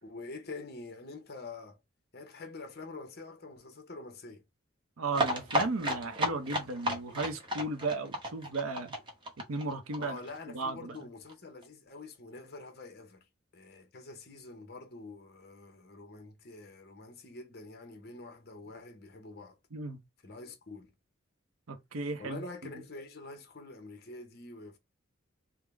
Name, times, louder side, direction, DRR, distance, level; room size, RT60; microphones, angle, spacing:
voice 1, 0.0-1.8 2.1-4.4 9.9-13.2 13.5-19.6 20.2-20.9 22.2-24.8, left 3 dB, 50° left, 0.9 m, -46 dB
voice 2, 5.0-8.9 9.5-10.2 10.5-11.0 19.7-20.0 21.7-22.4, right 3 dB, 85° right, 0.7 m, -35 dB
sound 1, 5.1-10.7 11.0-11.1 11.3-11.4 11.6-11.7, equal, 25° right, 0.8 m, -33 dB
3.6 x 2.1 x 3.4 m
head